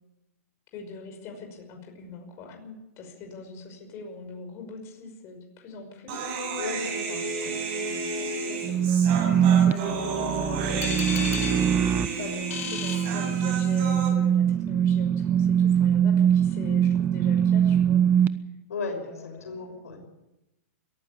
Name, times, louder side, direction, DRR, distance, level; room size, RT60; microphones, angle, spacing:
voice 1, 0.7-6.4 7.7-11.2 12.2-18.3 18.9-19.6, left 4 dB, 35° left, 3 dB, 5.6 m, -43 dB
Human voice, 6.1-14.1, right 4 dB, 50° right, 7.9 m, -32 dB
voice 2, 6.6-7.6 18.7-20.0, left 4 dB, 90° left, 4 dB, 6.2 m, -35 dB
sound 1, 8.6-18.3, right 9 dB, 25° right, 0.9 m, -23 dB
sound 2, 10.8-13.9, left 10 dB, 70° left, 2.5 m, -37 dB
22.5 x 14.5 x 8.6 m, 0.95 s
hypercardioid pair, 135°, 8 cm